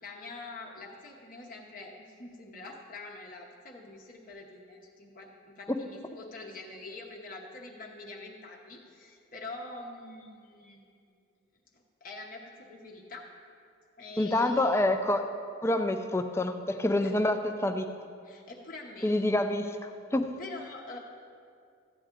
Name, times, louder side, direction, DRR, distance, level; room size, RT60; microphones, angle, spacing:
voice 1, 0.0-11.0 11.7-13.3 14.0-14.9 17.0-17.1 18.2-19.1 20.4-21.0, left 2 dB, 45° left, 0 dB, 0.9 m, -45 dB
voice 2, 14.2-15.3 15.6-17.9 19.0-20.3, left 1 dB, 15° left, 7 dB, 0.5 m, -27 dB
13.5 x 9.1 x 3.7 m, 2.3 s
head